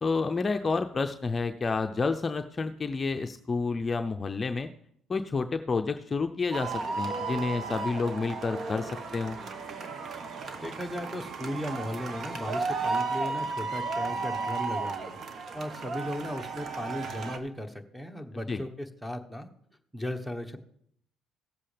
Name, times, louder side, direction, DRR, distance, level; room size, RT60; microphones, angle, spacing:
voice 1, 0.0-4.7 5.1-9.4 18.5-18.6, left 4 dB, 30° left, 7 dB, 0.5 m, -29 dB
sound 1, 6.5-17.4, right 4 dB, 50° right, 1.2 m, -34 dB
voice 2, 10.6-15.2 15.5-19.5 19.9-20.6, left 1 dB, ahead, 7 dB, 1.2 m, -36 dB
17.5 x 7.5 x 3.4 m, 0.69 s
supercardioid pair, 70°, 0 cm